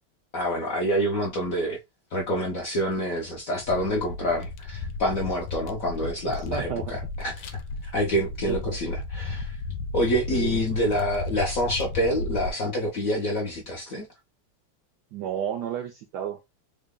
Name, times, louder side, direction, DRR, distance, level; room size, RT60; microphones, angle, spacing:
voice 1, 0.3-1.8 2.1-9.6 9.9-14.1, equal, 60° left, 0.9 m, -27 dB
sound 1, 3.6-12.5, left 3 dB, 85° left, 1.4 m, -34 dB
voice 2, 6.2-7.0 8.5-8.8 10.3-10.8 15.1-16.4, right 10 dB, 75° right, 0.9 m, -32 dB
3.7 x 2.1 x 3.5 m
omnidirectional pair, 2.3 m